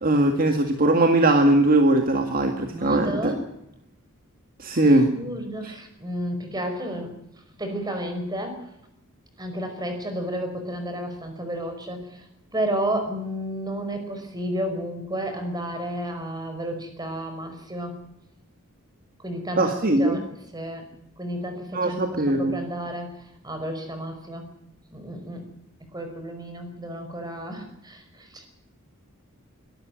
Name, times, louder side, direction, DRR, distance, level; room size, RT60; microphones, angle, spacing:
voice 1, 0.0-3.4 4.6-5.1 5.6-5.7 19.6-20.2 21.7-22.6, right 1 dB, 40° right, 5 dB, 2.0 m, -20 dB
voice 2, 2.7-3.4 5.1-7.1 7.6-8.6 9.4-12.2 12.5-17.9 19.2-19.7 20.0-20.2 20.5-20.8 21.2-23.1 23.4-24.4 24.9-25.5 25.9-28.5, right 1 dB, 20° right, 6 dB, 5.1 m, -31 dB
22.0 x 13.0 x 9.3 m, 0.81 s
head